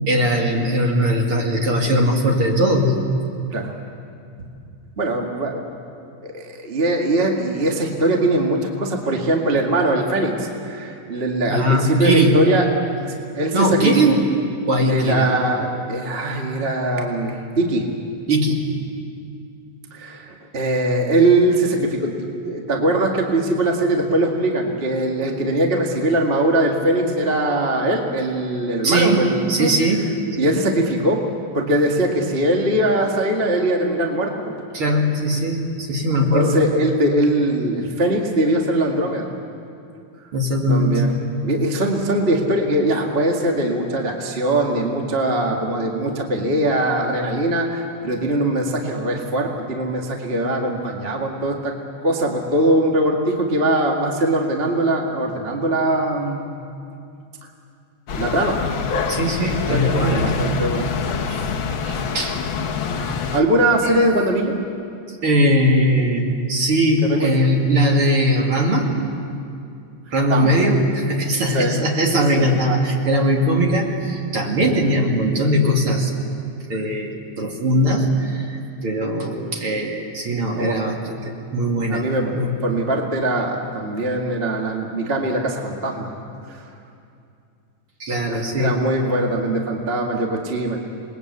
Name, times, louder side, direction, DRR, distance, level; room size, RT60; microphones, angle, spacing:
voice 1, 0.1-3.0 11.5-12.4 13.5-14.3 14.7-15.3 18.3-18.6 28.8-29.2 29.5-30.1 34.7-36.6 40.3-41.1 59.1-60.4 61.3-61.4 61.8-62.4 63.8-63.9 65.2-68.9 70.1-76.1 76.7-82.0 82.3-82.5 88.0-88.8, equal, 45° right, 0 dB, 3.1 m, -20 dB
voice 2, 5.0-5.7 6.2-12.7 13.0-14.1 14.9-17.8 19.9-29.7 30.4-31.2 31.5-34.5 36.2-39.3 40.7-41.1 41.4-51.7 52.0-56.5 58.1-58.6 59.4-60.9 63.3-64.5 67.0-67.3 70.3-70.7 71.5-71.8 72.4-72.5 80.6-80.8 81.9-82.3 82.6-86.1 88.3-91.0, right 1 dB, 25° right, 1 dB, 1.7 m, -21 dB
sound 1, 58.1-63.4, left 6 dB, 60° left, 1.3 m, -25 dB
28.0 x 21.0 x 8.3 m, 2.5 s
omnidirectional pair, 3.6 m